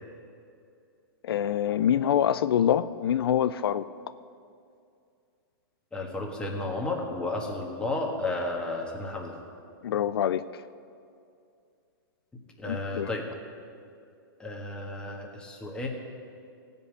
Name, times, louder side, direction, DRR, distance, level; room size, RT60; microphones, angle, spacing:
voice 1, 1.2-3.8 9.8-10.4 12.7-13.1, left 9 dB, 85° left, 14 dB, 0.4 m, -25 dB
voice 2, 5.9-9.3 12.3-13.3 14.4-15.9, left 2 dB, 5° left, 0 dB, 1.5 m, -33 dB
15.5 x 5.4 x 8.1 m, 2.4 s
hypercardioid pair, 145°, 12 cm